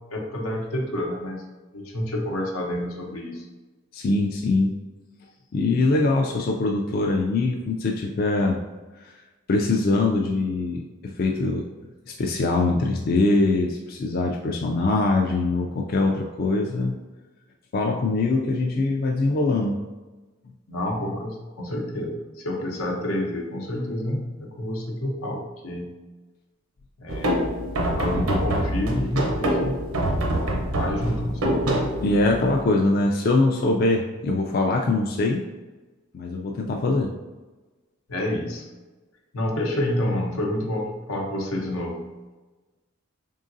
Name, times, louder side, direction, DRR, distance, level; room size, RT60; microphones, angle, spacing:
voice 1, 0.1-1.4 1.7-3.4 20.7-25.9 27.0-27.5 28.0-29.7 30.8-31.8 38.1-38.7 39.3-42.0, left 1 dB, 85° left, 0 dB, 0.8 m, -28 dB
voice 2, 3.9-4.8 5.5-8.6 9.0-9.1 9.5-10.8 11.2-11.6 12.1-17.0 17.7-19.8 32.0-35.4 36.1-37.1, left 2 dB, 45° left, 0 dB, 0.3 m, -22 dB
sound 1, 27.1-32.6, right 1 dB, 90° right, 0.7 m, -25 dB
3.7 x 3.7 x 2.6 m, 1.2 s
head